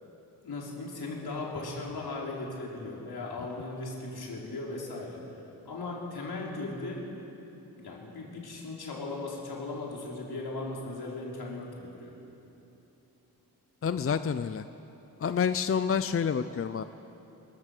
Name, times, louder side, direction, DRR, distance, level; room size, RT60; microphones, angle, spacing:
voice 1, 0.4-7.1 7.8-12.1, left 2 dB, 75° left, -3 dB, 4.4 m, -38 dB
voice 2, 13.8-14.6 15.2-16.8, left 7 dB, 35° left, 12 dB, 0.5 m, -28 dB
26.0 x 15.0 x 6.7 m, 3.0 s
wide cardioid pair, 90°, 38 cm